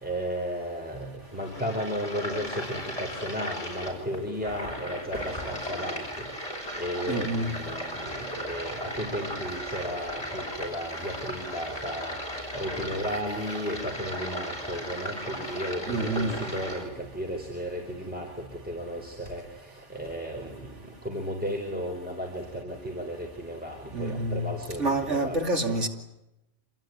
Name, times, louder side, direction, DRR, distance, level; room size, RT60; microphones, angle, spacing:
voice 1, 0.0-25.4 25.7-25.8, equal, 5° right, 1 dB, 4.6 m, -34 dB
sound 1, 1.2-16.8, equal, 30° left, 7.6 m, -36 dB
voice 2, 7.1-7.6 15.9-16.4 23.9-24.5 24.8-25.9, right 2 dB, 65° right, 3 dB, 3.0 m, -28 dB
27.5 x 21.5 x 9.4 m, 0.88 s
omnidirectional pair, 1.3 m